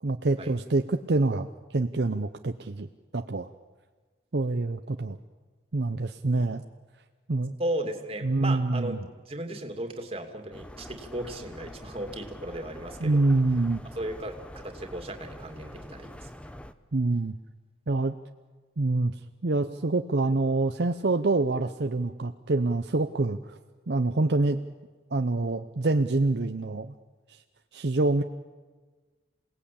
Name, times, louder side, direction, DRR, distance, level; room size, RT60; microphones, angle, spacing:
voice 1, 0.0-2.9 3.1-3.5 4.3-5.2 5.7-6.6 7.3-7.5 8.2-9.0 13.0-13.8 16.9-17.3 17.9-18.1 18.8-19.1 19.4-23.6 23.9-24.6 25.1-26.9 27.3-27.4 27.7-28.2, right 2 dB, 60° right, 7 dB, 0.7 m, -26 dB
voice 2, 7.6-13.3 13.9-16.5, right 1 dB, 30° right, 4 dB, 2.5 m, -36 dB
sound 1, 10.5-16.7, left 1 dB, 5° left, 0.8 m, -45 dB
28.0 x 18.0 x 8.6 m, 1.4 s
head